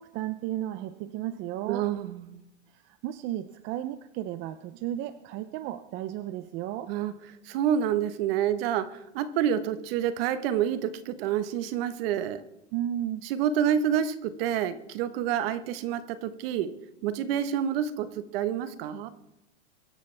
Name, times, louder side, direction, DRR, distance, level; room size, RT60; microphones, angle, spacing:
voice 1, 0.0-1.9 2.8-6.9 12.7-13.3, right 12 dB, 30° right, 0.6 m, -34 dB
voice 2, 1.7-2.4 6.9-7.1 7.5-12.4 13.3-16.7 17.0-19.1, right 9 dB, 55° right, 1.3 m, -28 dB
24.0 x 11.5 x 3.4 m
supercardioid pair, 140°, 36 cm